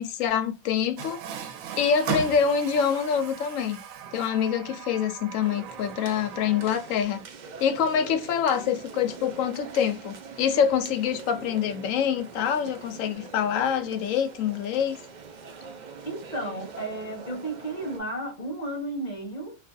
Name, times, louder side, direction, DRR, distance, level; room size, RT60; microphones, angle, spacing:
voice 1, 0.0-1.5 1.8-3.8 4.1-7.2 7.6-15.0, left 7 dB, 75° left, 0.9 m, -25 dB
Water tap faucet, 1.0-7.3, right 8 dB, 85° right, 1.0 m, -38 dB
sound 1, 5.4-18.0, right 5 dB, 65° right, 0.4 m, -43 dB
voice 2, 16.0-19.6, right 1 dB, 40° left, 0.7 m, -33 dB
2.5 x 2.5 x 3.6 m
omnidirectional pair, 1.4 m